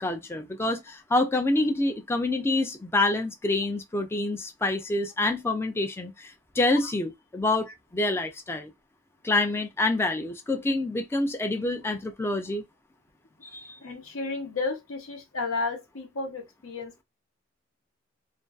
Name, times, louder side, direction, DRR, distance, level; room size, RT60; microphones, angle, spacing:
voice 1, 0.0-7.7 7.9-8.7 9.2-12.6 13.5-13.8, left 2 dB, 10° left, 0.3 m, -27 dB
voice 2, 13.8-17.0, left 3 dB, 85° left, 0.9 m, -32 dB
2.5 x 2.3 x 2.2 m
head